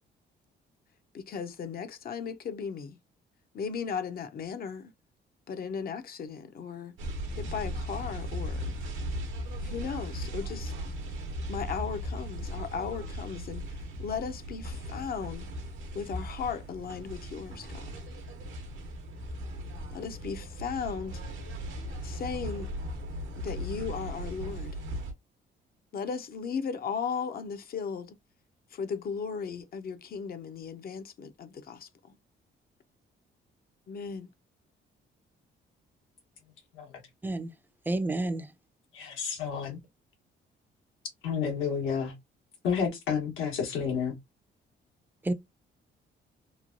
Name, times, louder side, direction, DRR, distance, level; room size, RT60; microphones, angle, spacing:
voice 1, 1.1-3.0 3.5-4.9 5.5-6.9 7.4-8.7 9.6-10.7 11.5-13.6 14.0-15.5 15.9-17.9 19.9-21.2 22.0-22.7 23.4-24.7 25.9-28.1 28.7-31.9 33.9-34.3, left 6 dB, 50° left, 0.5 m, -36 dB
sound 1, 7.0-25.1, equal, 80° right, 0.8 m, -37 dB
voice 2, 37.9-38.5 45.2-45.3, right 2 dB, 10° right, 0.4 m, -29 dB
voice 3, 38.9-39.8 41.2-42.1 42.6-44.1, left 6 dB, 85° left, 1.2 m, -30 dB
3.1 x 2.2 x 2.5 m
cardioid pair, 90°, 20 cm